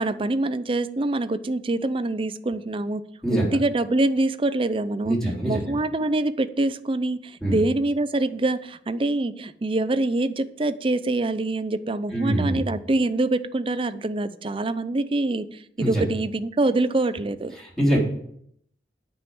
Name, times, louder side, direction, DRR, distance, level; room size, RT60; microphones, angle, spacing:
voice 1, 0.0-3.0 3.3-5.2 5.4-15.5 15.8-17.5, right 2 dB, 30° right, 13 dB, 0.5 m, -25 dB
voice 2, 5.0-5.8 7.4-7.6 12.1-12.6 15.8-16.0 17.6-18.0, right 1 dB, 5° left, -4 dB, 3.5 m, -24 dB
9.7 x 5.6 x 7.8 m, 0.69 s
head